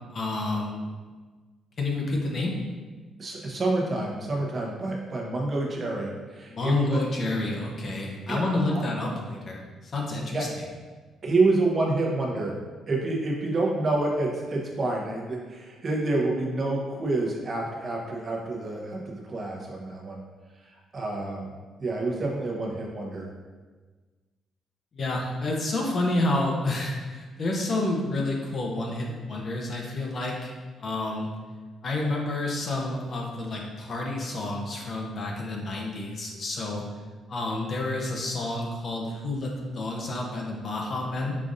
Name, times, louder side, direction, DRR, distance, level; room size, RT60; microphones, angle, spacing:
voice 1, 0.1-0.9 1.8-2.5 6.5-10.5 24.9-30.5 30.8-31.3 31.8-36.8 37.3-41.4, left 2 dB, 50° left, -1 dB, 0.7 m, -29 dB
voice 2, 3.2-7.0 8.3-8.4 8.7-8.8 10.3-10.5 11.2-12.5 12.9-20.2 20.6-21.5 21.8-23.3, right 2 dB, 40° right, -1 dB, 0.7 m, -28 dB
5.0 x 2.5 x 2.5 m, 1.4 s
cardioid pair, 90°, 0 cm